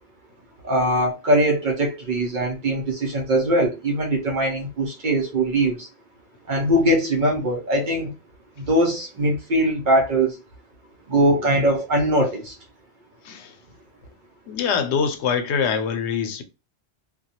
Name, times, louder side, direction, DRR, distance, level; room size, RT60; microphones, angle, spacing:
voice 1, 0.6-5.9 6.5-8.1 8.6-10.4 11.1-12.6, right 1 dB, 55° right, 0.8 m, -21 dB
voice 2, 14.5-16.4, left 6 dB, 85° left, 0.9 m, -24 dB
2.4 x 2.2 x 2.7 m
omnidirectional pair, 1.1 m